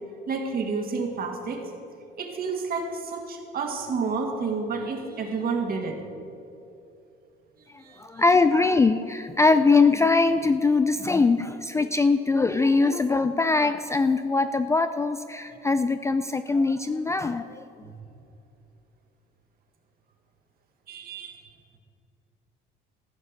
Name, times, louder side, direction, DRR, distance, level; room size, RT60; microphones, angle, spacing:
voice 1, 0.3-1.6 2.2-6.0 7.8-8.2 20.9-21.4, right 4 dB, 45° right, 3 dB, 2.0 m, -30 dB
voice 2, 8.0-17.5, left 3 dB, 15° left, 10 dB, 0.3 m, -22 dB
15.5 x 5.5 x 8.2 m, 2.7 s
cardioid pair, 110°, 21 cm